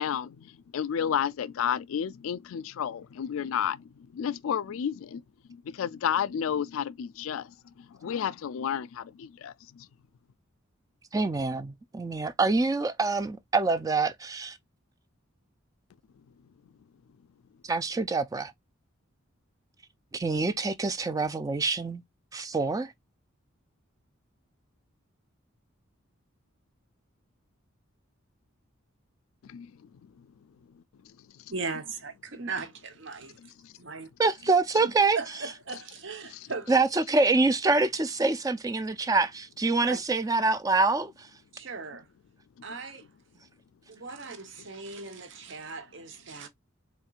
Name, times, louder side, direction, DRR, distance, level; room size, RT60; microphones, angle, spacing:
voice 1, 0.0-5.2 5.5-9.9 29.4-30.3 31.0-31.2 33.4-33.7 36.3-36.5, left 8 dB, 75° left, 0.3 m, -32 dB
voice 2, 11.1-14.6 17.6-18.5 20.1-22.0 22.3-22.9 34.2-35.2 36.7-41.3, right 3 dB, 15° right, 0.3 m, -26 dB
voice 3, 31.5-34.1 34.8-36.7 39.9-40.0 41.5-42.1 42.6-43.1 43.9-46.5, right 4 dB, 60° right, 0.9 m, -38 dB
4.3 x 3.6 x 2.4 m
head